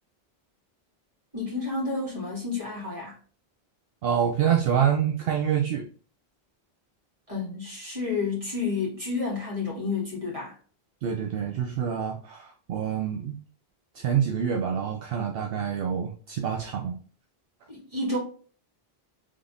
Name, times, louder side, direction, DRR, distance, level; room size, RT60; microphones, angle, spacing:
voice 1, 1.3-3.2 7.3-10.5 17.7-18.2, left 3 dB, 35° right, 1.8 m, -30 dB
voice 2, 4.0-5.8 11.0-13.4 13.9-17.0, right 8 dB, 70° right, 0.8 m, -26 dB
3.7 x 3.3 x 2.5 m
omnidirectional pair, 1.0 m